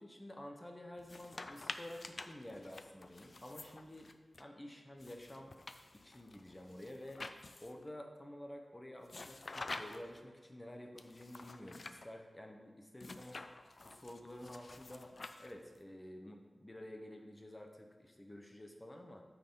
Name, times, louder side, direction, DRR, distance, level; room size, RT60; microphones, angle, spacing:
voice 1, 0.0-4.1 4.4-5.5 5.9-7.2 7.6-15.1 15.4-19.2, left 1 dB, 20° left, 3 dB, 0.9 m, -51 dB
sound 1, 1.0-4.4 5.0-7.9 9.1-10.2 11.0-12.1 13.0-15.8, left 3 dB, 55° left, 0.4 m, -49 dB
8.6 x 4.8 x 3.9 m, 1.4 s
wide cardioid pair, 80°, 0 cm